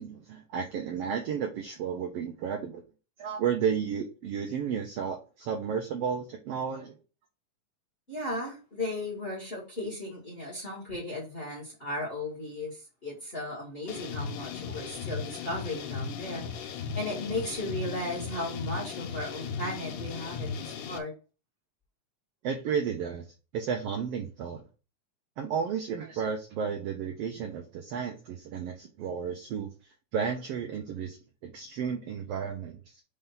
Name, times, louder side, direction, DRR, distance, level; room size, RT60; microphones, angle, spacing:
voice 1, 0.0-2.8 3.2-6.9 22.4-23.2 23.5-24.6 25.4-29.7 30.1-31.2 31.4-33.0, right 7 dB, 75° right, 3 dB, 1.4 m, -32 dB
voice 2, 8.1-21.1, left 1 dB, 25° left, -3 dB, 1.6 m, -36 dB
sound 1, 13.9-21.0, left 5 dB, 85° left, 2.3 m, -37 dB
5.4 x 3.6 x 5.6 m, 0.34 s
omnidirectional pair, 3.5 m